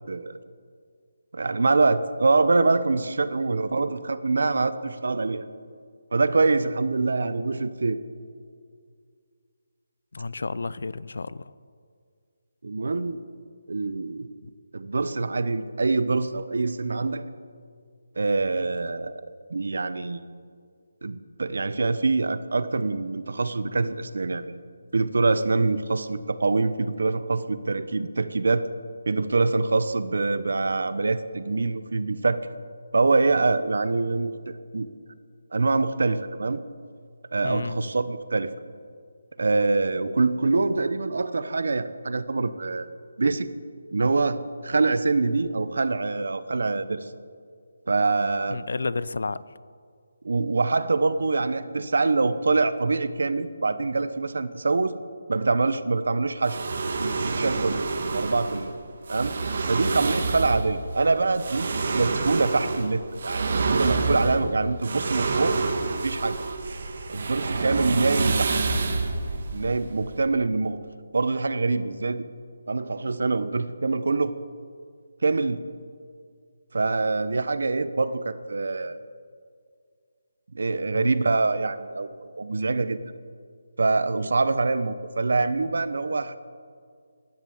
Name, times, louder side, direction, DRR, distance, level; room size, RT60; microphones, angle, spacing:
voice 1, 0.1-0.4 1.3-5.4 6.1-8.0 12.6-13.2 13.7-14.3 14.7-17.3 18.2-19.2 19.5-20.2 21.0-24.6 24.9-28.7 29.1-32.5 32.9-34.9 35.5-36.6 37.3-38.5 39.4-42.9 43.2-43.5 43.9-47.1 47.9-48.6 50.2-54.9 55.3-56.6 57.0-57.8 58.1-58.7 59.1-59.3 59.7-65.6 66.0-66.4 67.1-68.5 69.5-70.8 71.1-72.3 72.7-74.3 75.2-75.6 76.7-79.0 80.5-83.0 83.8-86.4, right 3 dB, 65° right, 13 dB, 0.9 m, -25 dB
voice 2, 10.1-11.5 14.4-14.5 37.4-37.8 48.5-49.4 80.9-81.2, left 3 dB, 65° left, 18 dB, 0.5 m, -31 dB
sound 1, 56.4-70.3, right 3 dB, 45° right, 1.4 m, -28 dB
16.5 x 11.0 x 7.2 m, 2.1 s
hypercardioid pair, 175°, 0 cm